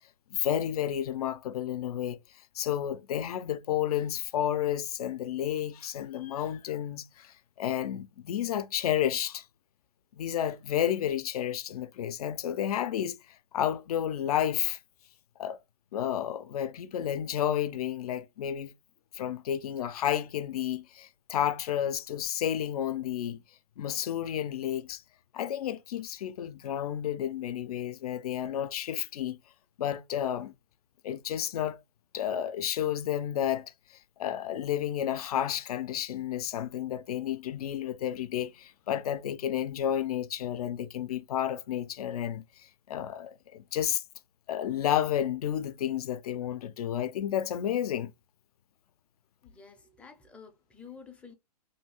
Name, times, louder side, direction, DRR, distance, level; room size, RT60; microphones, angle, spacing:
voice 1, 0.3-2.2 2.5-9.4 10.1-14.8 15.4-15.6 15.9-18.7 19.1-23.4 23.8-25.0 25.3-29.4 29.8-30.5 31.0-31.8 32.1-44.0 44.5-48.1, left 10 dB, 70° left, 0.4 m, -31 dB
voice 2, 49.4-51.3, left 6 dB, 5° left, 0.4 m, -50 dB
2.7 x 2.3 x 2.8 m
hypercardioid pair, 135°, 20 cm